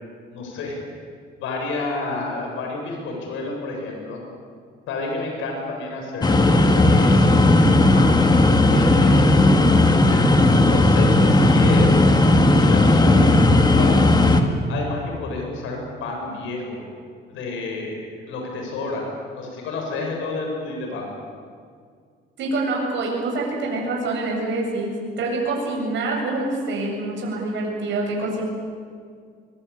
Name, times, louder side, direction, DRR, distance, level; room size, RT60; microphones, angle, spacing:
voice 1, 0.3-0.8 1.4-4.2 4.9-8.2 8.7-9.2 10.1-12.0 12.5-14.2 14.7-16.8 17.3-19.0 19.3-21.1, left 3 dB, 90° left, 1 dB, 7.9 m, -30 dB
sound 1, 6.2-14.4, left 2 dB, 20° left, 2.2 m, -15 dB
voice 2, 22.4-28.4, right 2 dB, 70° right, -1 dB, 7.8 m, -26 dB
24.5 x 23.5 x 8.8 m, 2.1 s
cardioid pair, 115°, 20 cm